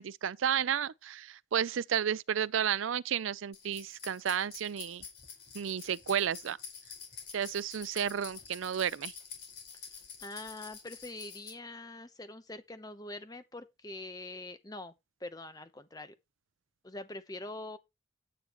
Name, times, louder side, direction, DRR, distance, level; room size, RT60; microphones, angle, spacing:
voice 1, 0.0-5.0 5.5-6.6 7.3-9.1, right 8 dB, 80° right, 0.4 m, -32 dB
sound 1, 3.5-11.5, left 6 dB, 55° left, 4.8 m, -48 dB
voice 2, 10.2-14.9 15.2-16.1 16.8-17.8, left 2 dB, 20° left, 0.9 m, -44 dB
10.0 x 9.3 x 3.0 m
head